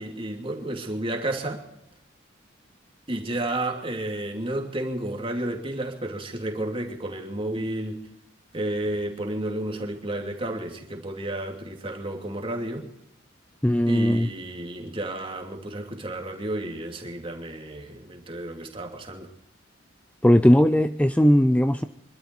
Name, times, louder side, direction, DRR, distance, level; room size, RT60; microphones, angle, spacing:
voice 1, 0.0-1.6 3.1-8.1 8.5-12.9 13.9-19.3, right 1 dB, 30° right, 2.7 m, -31 dB
voice 2, 13.6-14.3 20.2-21.8, equal, 5° left, 0.5 m, -18 dB
25.0 x 12.5 x 4.6 m
head